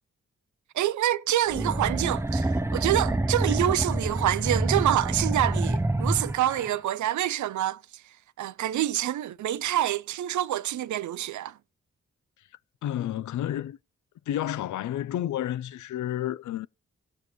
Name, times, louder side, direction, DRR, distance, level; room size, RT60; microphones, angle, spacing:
voice 1, 0.7-8.0 8.4-11.6, right 12 dB, 80° right, 0.5 m, -27 dB
sound 1, 1.5-6.7, right 2 dB, 10° right, 0.6 m, -27 dB
voice 2, 12.8-13.8 14.3-16.7, left 12 dB, 80° left, 0.4 m, -30 dB
18.0 x 6.7 x 3.0 m
cardioid pair, 95°, 29 cm